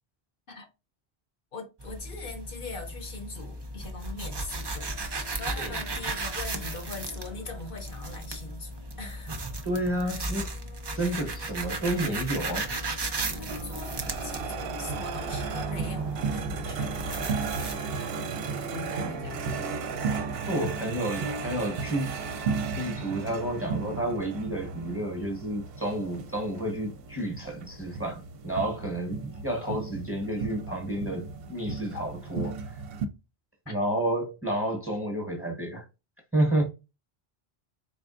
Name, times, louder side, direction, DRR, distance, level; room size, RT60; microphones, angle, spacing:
voice 1, 1.5-9.6 10.0-10.3 11.0-11.3 13.3-18.3 18.7-19.8 20.8-20.9 33.7-33.8, left 3 dB, 60° left, 0.9 m, -42 dB
sound 1, 1.8-17.7, right 2 dB, 35° right, 0.4 m, -36 dB
sound 2, 3.3-17.4, left 3 dB, 85° left, 1.9 m, -52 dB
voice 2, 9.6-10.4 10.9-12.7 20.5-22.4 22.8-32.8 33.7-35.9 36.3-36.6, right 1 dB, 15° right, 0.8 m, -30 dB
sound 3, 13.2-33.1, right 5 dB, 70° right, 0.7 m, -34 dB
4.1 x 3.4 x 2.4 m
omnidirectional pair, 1.1 m